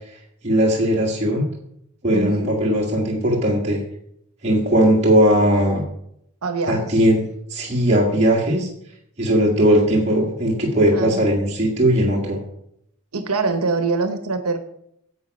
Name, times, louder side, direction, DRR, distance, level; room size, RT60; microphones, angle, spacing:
voice 1, 0.4-1.5 2.0-3.8 4.4-5.8 6.7-8.7 9.2-12.4, equal, 30° right, -4 dB, 1.7 m, -18 dB
voice 2, 2.1-2.5 6.4-6.9 10.9-11.2 13.1-14.6, right 3 dB, 70° right, 8 dB, 1.0 m, -24 dB
9.5 x 8.0 x 5.3 m, 0.73 s
head